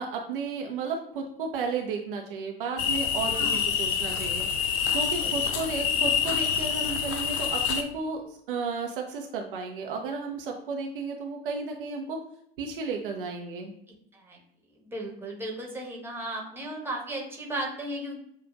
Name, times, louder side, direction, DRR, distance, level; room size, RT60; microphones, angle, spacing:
voice 1, 0.0-4.4 4.9-8.2 8.5-12.2 12.6-13.7, right 4 dB, 65° right, 2 dB, 0.6 m, -33 dB
sound 1, 2.8-7.8, left 7 dB, 45° left, 0.5 m, -27 dB
voice 2, 3.3-3.7 5.2-5.3 13.9-14.4 14.8-18.2, right 1 dB, 5° right, -1 dB, 1.2 m, -35 dB
6.9 x 2.4 x 2.4 m, 0.73 s
figure-of-eight pair, 70°, 29 cm